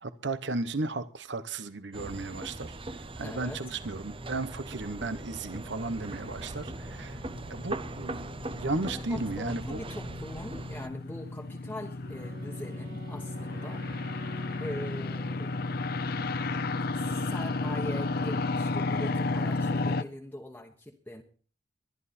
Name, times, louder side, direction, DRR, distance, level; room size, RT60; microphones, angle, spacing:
voice 1, 0.0-2.8 3.2-7.2 7.5-9.8, right 3 dB, 75° right, 1.0 m, -34 dB
sound 1, 1.9-10.9, right 2 dB, 30° right, 0.8 m, -40 dB
voice 2, 3.2-3.6 8.8-13.9 14.5-15.5 16.9-21.2, left 1 dB, 10° left, 1.3 m, -42 dB
sound 2, 5.5-20.0, left 3 dB, 55° left, 0.7 m, -33 dB
Wind instrument woodwind instrument, 12.0-16.0, right 2 dB, 50° right, 3.8 m, -48 dB
22.5 x 11.0 x 4.3 m
head